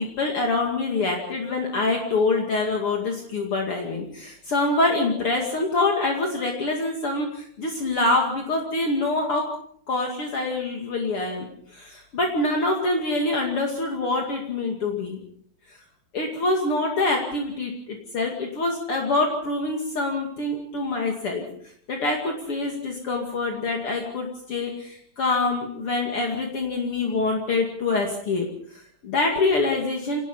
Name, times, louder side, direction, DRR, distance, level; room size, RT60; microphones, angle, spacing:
voice 1, 0.0-9.4 9.9-15.2 15.7-15.8 16.1-21.5 21.9-28.5 28.7-30.2, left 2 dB, 45° left, 1 dB, 1.9 m, -25 dB
27.0 x 18.5 x 5.5 m, 0.67 s
omnidirectional pair, 6.0 m